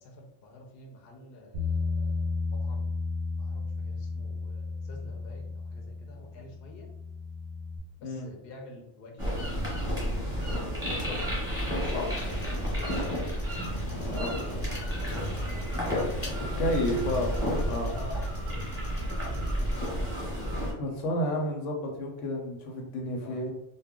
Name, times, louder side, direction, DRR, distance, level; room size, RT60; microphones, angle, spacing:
voice 1, 0.0-3.0 3.4-6.9 8.0-9.5 10.8-13.1 14.0-17.2 17.9-18.3 19.2-20.1 23.2-23.4, left 2 dB, 60° left, 1 dB, 0.7 m, -47 dB
Bass guitar, 1.5-7.8, left 3 dB, 55° right, 0.5 m, -33 dB
sound 1, 9.2-20.7, equal, 5° right, 0.9 m, -31 dB
sound 2, 12.2-20.0, equal, 20° left, 0.4 m, -44 dB
voice 2, 13.9-14.7 15.5-15.6 16.2-16.3 16.6-17.4 17.7-17.9 20.8-23.5, left 1 dB, 85° left, 2 dB, 1.0 m, -31 dB
2.3 x 2.1 x 3.5 m, 0.80 s
omnidirectional pair, 1.2 m